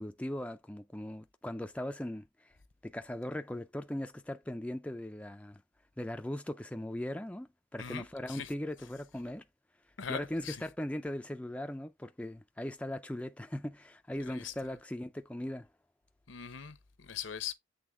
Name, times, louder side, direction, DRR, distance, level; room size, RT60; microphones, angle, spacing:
voice 1, 0.0-2.6 2.8-5.6 6.0-9.5 10.1-15.7, left 1 dB, 5° left, 0.4 m, -39 dB
voice 2, 7.8-8.5 10.0-10.6 14.3-14.5 16.3-17.5, left 7 dB, 70° left, 0.8 m, -41 dB
8.1 x 3.4 x 3.5 m
head